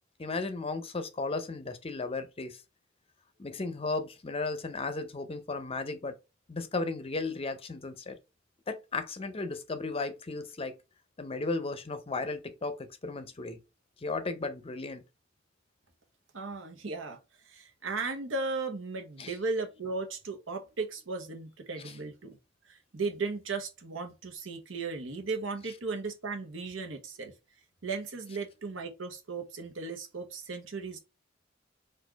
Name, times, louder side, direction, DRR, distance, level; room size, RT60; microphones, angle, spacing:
voice 1, 0.2-2.6 3.4-6.2 6.5-8.2 8.7-10.8 11.2-13.6 14.0-15.0 19.2-19.3, left 3 dB, 30° left, 0.6 m, -35 dB
voice 2, 16.3-22.4 22.6-27.3 27.8-31.0, right 3 dB, 70° right, 1.0 m, -36 dB
4.2 x 2.5 x 4.5 m
head